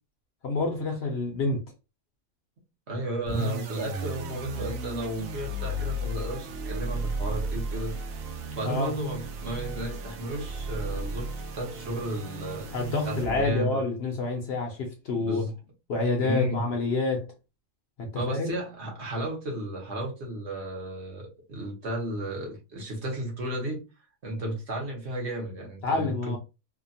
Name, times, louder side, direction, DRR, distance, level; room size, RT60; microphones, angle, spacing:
voice 1, 0.4-1.7 8.6-8.9 12.7-15.4 15.9-17.3 18.0-18.5 25.8-26.4, left 3 dB, 60° left, 0.8 m, -28 dB
voice 2, 2.9-8.0 8.5-12.7 13.0-13.8 15.2-15.5 16.2-16.7 18.1-23.8 24.2-26.4, right 1 dB, 60° right, 1.1 m, -33 dB
sound 1, 3.2-13.6, right 1 dB, 90° right, 1.0 m, -34 dB
2.8 x 2.2 x 2.6 m
omnidirectional pair, 1.4 m